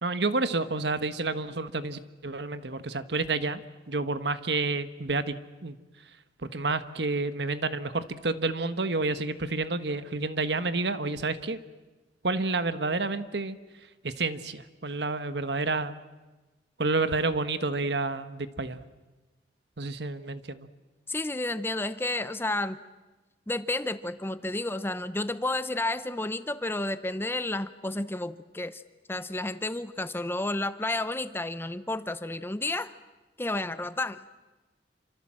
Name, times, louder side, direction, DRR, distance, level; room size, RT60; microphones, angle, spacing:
voice 1, 0.0-3.6 3.9-5.3 5.6-5.8 6.5-11.6 12.2-13.6 14.0-15.9 16.8-18.8 19.8-20.7, right 3 dB, 70° right, 11 dB, 1.4 m, -29 dB
voice 2, 21.1-22.8 23.5-28.8 29.1-32.9 33.4-34.2, left 2 dB, 15° left, 13 dB, 0.8 m, -31 dB
28.0 x 26.0 x 7.6 m, 1.2 s
head